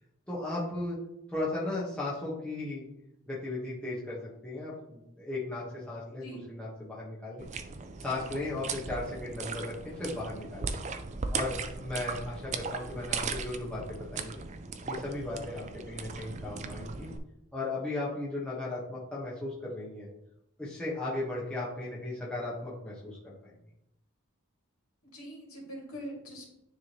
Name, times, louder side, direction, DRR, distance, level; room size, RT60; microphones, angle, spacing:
voice 1, 0.3-1.0 1.3-2.8 3.3-4.2 4.4-7.5 8.0-10.7 11.3-14.4 14.8-17.1 17.5-20.1 20.6-23.5, left 2 dB, 5° left, -8 dB, 1.4 m, -36 dB
sound 1, 7.4-17.2, right 4 dB, 30° right, 0.4 m, -38 dB
voice 2, 25.0-26.4, right 1 dB, 75° left, -2 dB, 2.5 m, -43 dB
9.5 x 3.6 x 3.1 m, 0.84 s
head